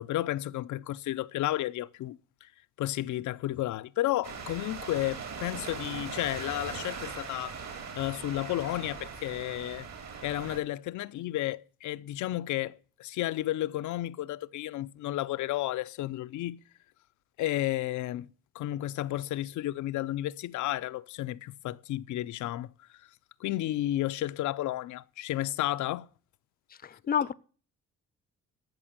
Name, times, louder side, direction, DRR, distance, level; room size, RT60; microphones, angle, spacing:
voice 1, 0.0-2.5 2.8-7.6 8.0-9.9 10.2-16.6 17.4-18.3 18.5-22.7 23.4-26.1, left 15 dB, 75° left, 0.6 m, -32 dB
sound 1, 4.2-10.6, right 5 dB, 60° right, 3.6 m, -40 dB
voice 2, 26.8-27.3, left 8 dB, 30° left, 0.6 m, -29 dB
14.0 x 6.1 x 7.4 m
cardioid pair, 90°, 30 cm